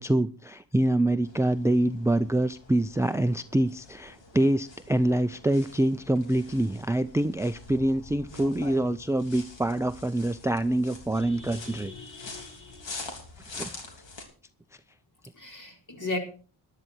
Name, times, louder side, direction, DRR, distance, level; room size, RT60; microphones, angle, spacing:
voice 1, 0.0-11.9 13.5-13.7, right 1 dB, 5° right, 14 dB, 0.5 m, -25 dB
sound 1, 1.2-14.2, left 3 dB, 75° left, 3.4 m, -45 dB
voice 2, 11.2-12.9 15.4-16.2, left 3 dB, 40° left, 2 dB, 4.6 m, -37 dB
13.5 x 11.5 x 4.5 m, 0.38 s
cardioid pair, 65°, 45 cm